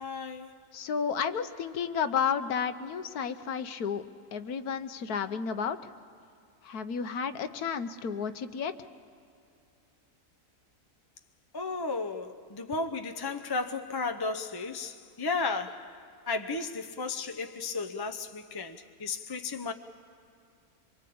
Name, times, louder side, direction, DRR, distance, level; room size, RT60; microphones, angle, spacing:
voice 1, 0.0-0.6 11.5-19.7, left 4 dB, 25° left, 0.5 m, -34 dB
voice 2, 0.7-4.0 4.3-5.8 6.6-8.7, left 6 dB, 80° left, 1.4 m, -32 dB
26.0 x 23.5 x 8.5 m
omnidirectional pair, 1.6 m